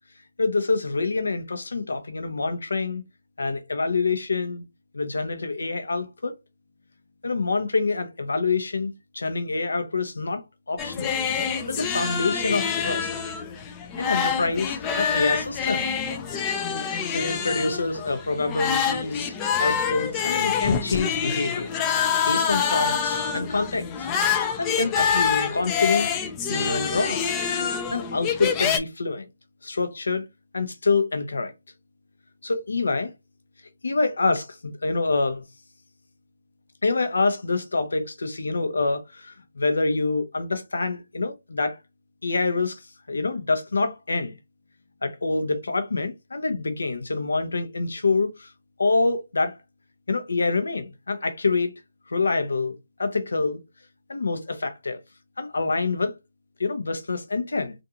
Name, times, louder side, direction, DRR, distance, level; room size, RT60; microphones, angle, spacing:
voice 1, 0.4-3.0 3.4-4.6 4.9-6.3 7.2-10.4 10.7-11.1 11.7-13.1 14.0-15.8 17.1-19.3 19.6-21.7 22.2-23.9 24.6-26.1 26.5-27.2 27.9-29.3 29.6-30.2 30.5-31.5 32.4-33.1 33.8-35.4 36.8-41.8 42.2-42.8 43.1-44.4 45.0-48.5 48.8-49.6 50.1-51.7 52.1-53.6 54.1-55.0 55.4-56.1 56.6-57.7, left 3 dB, 70° left, 0.7 m, -26 dB
sound 1, 10.8-28.8, left 7 dB, 15° left, 0.3 m, -26 dB
2.5 x 2.4 x 2.8 m
figure-of-eight pair, 155°, 0 cm